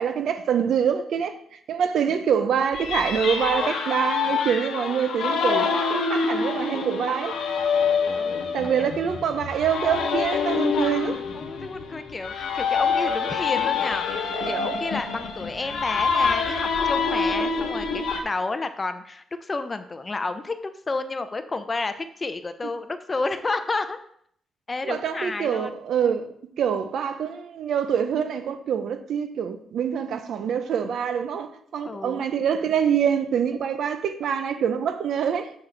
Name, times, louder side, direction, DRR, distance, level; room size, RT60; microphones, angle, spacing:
voice 1, 0.0-1.4 1.7-7.4 8.5-11.2 24.8-35.5, right 7 dB, 70° right, 0.7 m, -25 dB
sound 1, 2.7-18.2, left 5 dB, 85° left, 0.9 m, -26 dB
voice 2, 8.1-8.9 11.3-14.1 14.4-20.5 20.9-24.0 24.7-25.8 31.8-32.2, left 3 dB, 25° left, 0.5 m, -31 dB
6.5 x 5.9 x 3.3 m
cardioid pair, 110°, 0 cm